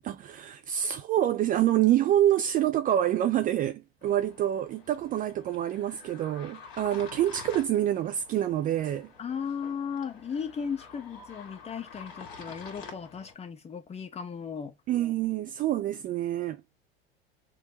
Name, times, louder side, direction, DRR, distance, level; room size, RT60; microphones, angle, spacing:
voice 1, 0.0-9.1 14.9-16.6, right 12 dB, 30° right, 0.4 m, -27 dB
sound 1, 4.0-13.3, left 4 dB, 45° left, 1.6 m, -48 dB
voice 2, 9.2-14.7, left 6 dB, 20° left, 0.9 m, -36 dB
6.1 x 2.1 x 2.8 m
figure-of-eight pair, 75°, 30 cm